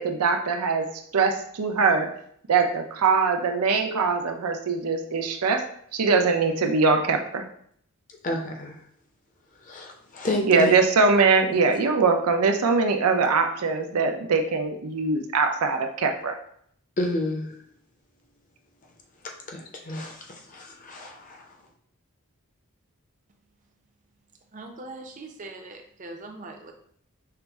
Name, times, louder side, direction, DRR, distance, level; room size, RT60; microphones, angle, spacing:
voice 1, 0.0-2.1 2.5-5.7 5.9-7.4 10.5-16.4, right 4 dB, 90° right, 5 dB, 0.6 m, -22 dB
voice 2, 8.2-8.8 9.6-10.8 17.0-17.5 19.2-21.6, left 1 dB, 35° left, 1 dB, 0.6 m, -31 dB
voice 3, 24.5-26.7, right 2 dB, 35° right, 4 dB, 0.5 m, -41 dB
5.7 x 2.0 x 3.4 m, 0.64 s
head